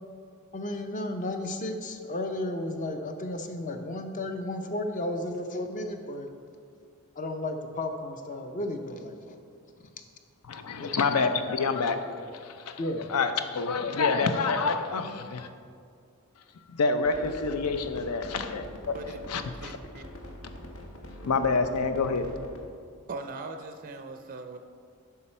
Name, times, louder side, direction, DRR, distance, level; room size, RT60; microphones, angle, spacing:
voice 1, 0.5-6.3 7.2-9.4 10.8-11.0 12.8-13.1, left 1 dB, 35° left, 6 dB, 0.6 m, -33 dB
voice 2, 10.5-15.5 16.7-18.9 19.3-19.8 21.3-22.3, left 4 dB, 85° left, 9 dB, 0.6 m, -28 dB
sound 1, 17.1-22.6, equal, 60° left, 1.0 m, -44 dB
voice 3, 19.5-20.0 23.1-24.6, right 3 dB, 40° right, 6 dB, 0.4 m, -40 dB
8.4 x 5.7 x 4.3 m, 2.2 s
head